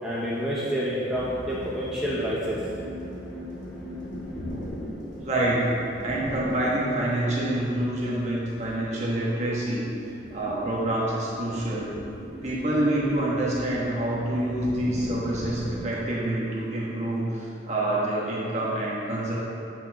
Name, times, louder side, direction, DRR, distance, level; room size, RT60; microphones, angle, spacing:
voice 1, 0.0-2.6, equal, 5° right, -9 dB, 0.7 m, -28 dB
sound 1, 1.1-10.0, left 1 dB, 80° left, 1.6 m, -42 dB
sound 2, 3.2-15.8, equal, 45° left, 1.4 m, -40 dB
voice 2, 5.2-5.7 6.0-9.8 10.3-11.9 12.4-19.4, right 1 dB, 35° right, -6 dB, 1.4 m, -27 dB
8.4 x 6.3 x 3.0 m, 2.6 s
head